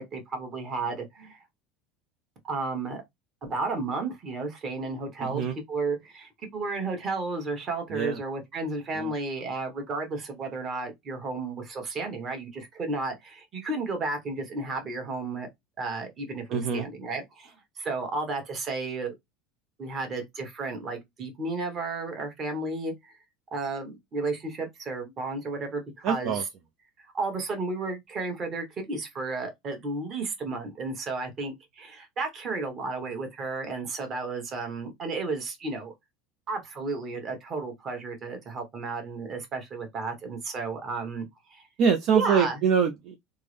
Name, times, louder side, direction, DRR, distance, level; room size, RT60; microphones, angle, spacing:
voice 1, 0.0-1.4 2.5-3.0 3.4-15.5 15.8-19.1 19.8-23.1 23.5-26.4 27.1-35.9 36.5-41.6 42.1-42.6, right 3 dB, 35° right, 1.3 m, -33 dB
voice 2, 5.2-5.5 7.9-8.2 9.0-9.1 16.5-16.9 26.0-26.4 41.8-43.2, right 6 dB, 55° right, 0.5 m, -24 dB
3.5 x 2.1 x 3.2 m
supercardioid pair, 110°, 0 cm